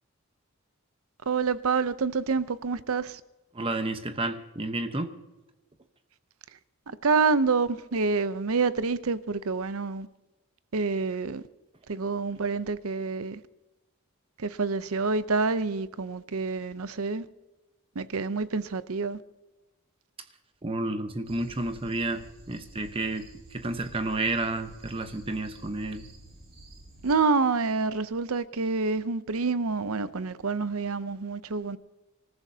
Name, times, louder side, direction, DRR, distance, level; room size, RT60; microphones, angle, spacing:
voice 1, 1.3-3.2 7.0-10.1 10.7-11.4 11.9-13.4 14.4-17.3 18.0-19.2 27.0-31.8, right 4 dB, 75° right, 0.7 m, -27 dB
voice 2, 3.5-5.1 20.6-26.1, right 2 dB, 25° right, 1.0 m, -31 dB
sound 1, 21.2-27.2, right 1 dB, 45° right, 6.0 m, -50 dB
26.0 x 14.0 x 2.8 m
head